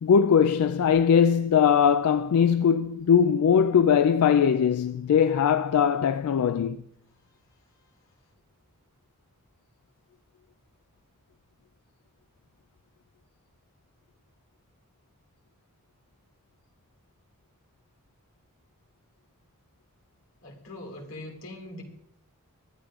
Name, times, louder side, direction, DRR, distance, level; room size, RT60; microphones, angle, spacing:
voice 1, 0.0-6.8, left 7 dB, 90° left, 0.3 m, -21 dB
voice 2, 20.4-21.8, left 1 dB, 65° left, 2.2 m, -41 dB
23.0 x 10.5 x 2.4 m
head